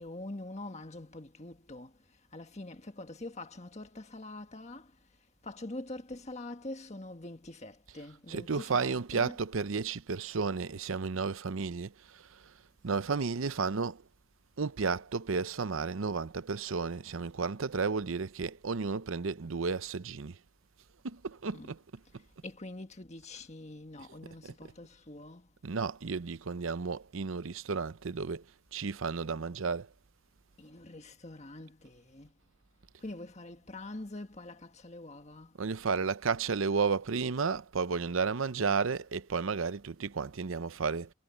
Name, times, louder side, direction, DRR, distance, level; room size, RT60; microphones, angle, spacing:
voice 1, 0.0-1.9 2.3-5.0 5.4-9.4 21.5-21.7 22.4-25.5 30.6-32.3 33.0-35.6, left 2 dB, 35° left, 1.6 m, -44 dB
voice 2, 8.3-12.4 12.8-14.0 14.6-20.4 21.0-21.8 25.6-28.4 28.7-29.9 35.6-41.1, right 5 dB, 80° right, 0.7 m, -32 dB
head